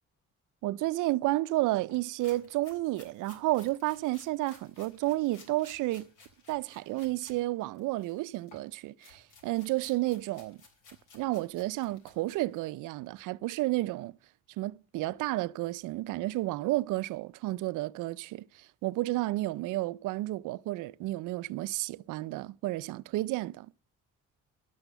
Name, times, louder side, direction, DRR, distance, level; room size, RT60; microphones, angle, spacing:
voice 1, 0.6-6.1 6.5-10.6 11.1-14.1 14.6-23.7, right 18 dB, 90° right, 0.5 m, -31 dB
sound 1, 1.9-7.4 7.7-12.7, left 4 dB, 85° left, 3.8 m, -58 dB
12.5 x 8.1 x 6.7 m
cardioid pair, 90°, 30 cm